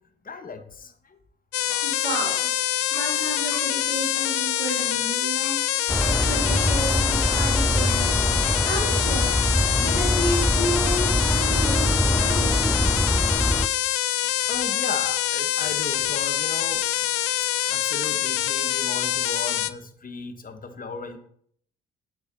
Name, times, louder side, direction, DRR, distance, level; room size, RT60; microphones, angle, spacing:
voice 1, 0.2-1.2 1.7-1.8 4.5-4.6 14.5-16.9 17.1-21.2, left 4 dB, 30° left, 7 dB, 1.3 m, -36 dB
sound 1, 1.5-19.7, left 13 dB, 50° left, 0.6 m, -25 dB
sound 2, 1.7-3.2 3.5-3.8 4.2-5.7 6.0-6.3 6.6-8.1 8.5-8.7 9.1-10.6 10.8-11.1, left 2 dB, 65° left, 2.7 m, -45 dB
voice 2, 1.8-2.5 2.9-12.7, right 1 dB, 85° right, -2 dB, 2.1 m, -32 dB
sound 3, 5.9-13.7, equal, ahead, 0.4 m, -23 dB
9.8 x 8.7 x 3.0 m, 0.64 s
figure-of-eight pair, 45°, 30 cm